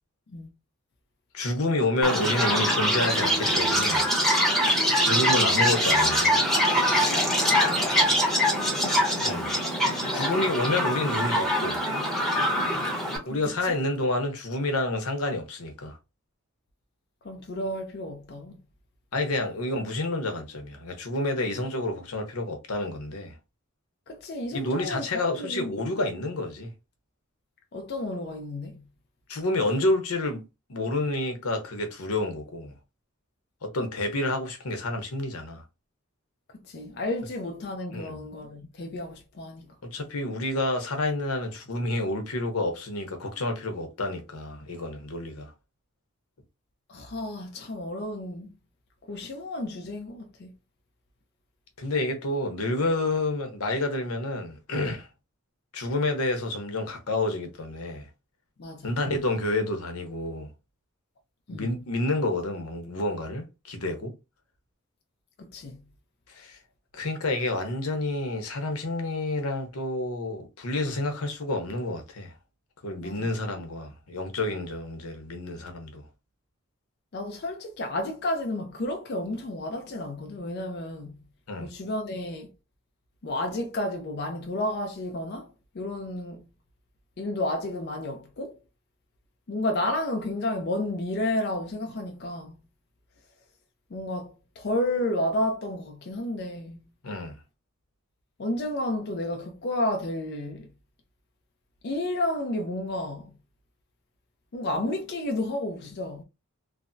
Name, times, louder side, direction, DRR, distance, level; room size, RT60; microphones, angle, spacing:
voice 1, 1.3-4.1 5.0-6.4 9.2-9.5 10.1-11.8 13.2-16.0 19.1-23.4 24.5-26.7 29.3-30.4 30.7-32.7 33.6-35.6 37.9-38.3 39.8-45.5 51.8-55.1 55.7-58.1 58.8-60.5 61.5-64.1 66.3-66.6 66.9-72.3 72.8-76.1 81.5-81.7 97.0-97.4, left 2 dB, 90° left, 0.9 m, -29 dB
Chirp tweet, 2.0-13.2, equal, ahead, 0.8 m, -23 dB
voice 2, 13.2-13.8 17.2-18.6 24.1-25.7 27.7-28.8 36.5-39.7 46.9-48.5 49.1-50.5 58.6-59.0 61.5-61.7 65.4-65.8 73.0-73.3 77.1-81.2 81.6-82.5 83.2-86.5 87.2-88.6 89.5-92.6 93.9-96.8 98.4-100.7 101.8-103.3 104.5-106.2, left 1 dB, 50° left, 0.4 m, -31 dB
3.3 x 2.0 x 2.6 m
head